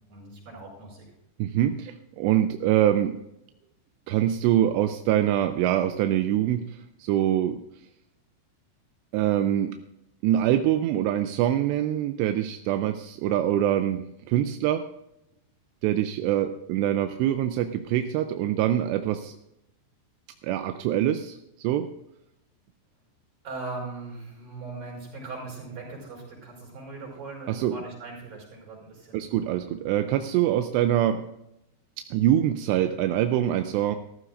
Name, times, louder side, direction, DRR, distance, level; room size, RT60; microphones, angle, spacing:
voice 1, 0.1-1.1 23.4-29.3, right 3 dB, 40° right, -3 dB, 6.2 m, -39 dB
voice 2, 1.4-3.2 4.1-7.6 9.1-9.7 10.2-14.8 15.8-19.3 20.4-21.9 27.5-27.8 29.1-31.2 32.1-34.0, right 11 dB, 80° right, 8 dB, 2.6 m, -24 dB
14.5 x 14.0 x 2.5 m, 0.83 s
omnidirectional pair, 5.3 m